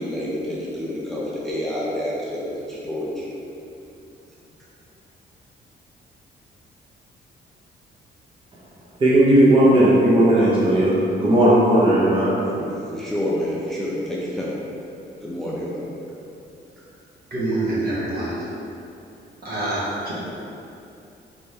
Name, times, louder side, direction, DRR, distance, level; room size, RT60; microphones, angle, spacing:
voice 1, 0.0-3.3 12.5-14.5 15.2-15.8, left 1 dB, ahead, -6 dB, 0.5 m, -28 dB
voice 2, 9.0-10.9 11.2-12.3, right 1 dB, 30° right, -8 dB, 0.9 m, -15 dB
voice 3, 17.3-18.4 19.4-20.1, right 2 dB, 50° right, -8 dB, 1.5 m, -26 dB
4.3 x 3.4 x 3.3 m, 2.7 s
cardioid pair, 105°, 19 cm